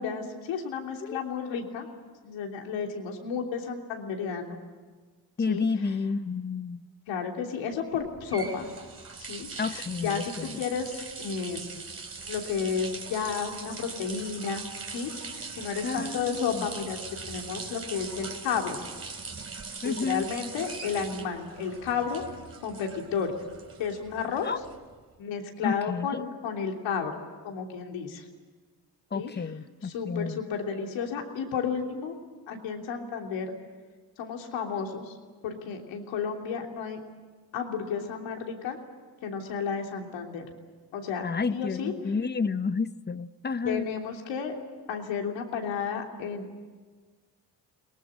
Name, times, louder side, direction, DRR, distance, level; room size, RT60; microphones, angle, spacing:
voice 1, 0.0-1.9 2.2-4.6 5.5-5.6 7.1-8.6 9.3-11.7 12.3-14.7 14.9-15.1 15.5-17.0 17.3-18.8 19.8-22.2 22.6-23.3 23.8-24.5 25.2-28.2 29.1-29.3 29.9-32.2 32.5-33.5 34.2-35.1 35.4-37.0 37.5-38.8 39.2-40.4 40.9-41.9 43.6-44.5 44.9-46.5, left 6 dB, 80° left, 2 dB, 3.3 m, -32 dB
voice 2, 5.4-6.9 9.6-10.6 15.8-16.7 19.8-20.3 24.4-24.6 25.6-26.3 29.1-30.4 41.2-43.9, left 4 dB, 25° left, 14 dB, 0.9 m, -31 dB
sound 1, 8.0-25.0, right 4 dB, 30° right, 3.1 m, -41 dB
22.5 x 19.5 x 10.0 m, 1.4 s
supercardioid pair, 65°, 44 cm